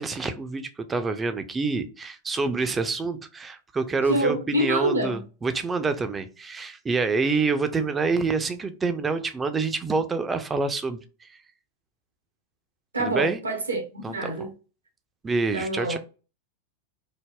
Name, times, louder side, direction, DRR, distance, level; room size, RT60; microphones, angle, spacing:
voice 1, 0.0-11.0 13.0-13.4 14.0-14.5 15.2-16.0, right 4 dB, 15° right, 0.4 m, -27 dB
voice 2, 4.1-5.2 12.9-14.5 15.5-16.0, right 1 dB, 80° right, 0.8 m, -26 dB
3.3 x 2.0 x 2.2 m
figure-of-eight pair, 90°, 0 cm